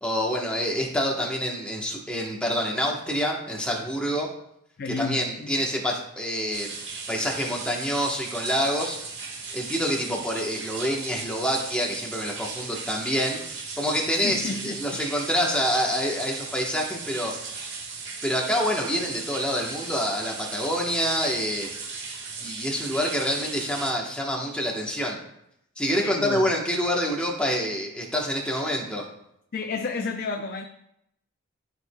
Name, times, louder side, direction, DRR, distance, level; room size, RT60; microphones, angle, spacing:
voice 1, 0.0-4.3 4.9-6.7 7.1-9.0 9.5-17.3 18.2-22.2 22.4-25.2 25.8-29.0, equal, 5° left, 1.1 m, -27 dB
voice 2, 4.8-5.6 14.2-15.0 26.0-26.5 29.5-30.7, left 4 dB, 45° left, 0.4 m, -31 dB
sound 1, 6.5-23.9, right 4 dB, 55° right, 1.6 m, -37 dB
13.0 x 4.7 x 2.2 m
head